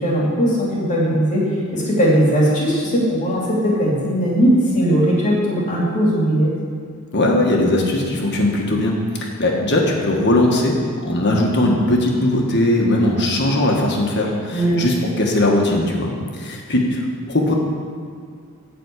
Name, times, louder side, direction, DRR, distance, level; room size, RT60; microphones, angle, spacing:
voice 1, 0.0-6.5 14.5-14.9, equal, 35° left, -5 dB, 2.5 m, -18 dB
voice 2, 7.1-8.9 9.2-17.0 17.3-17.5, left 1 dB, 55° left, 0 dB, 1.6 m, -19 dB
12.0 x 4.3 x 8.2 m, 2.2 s
head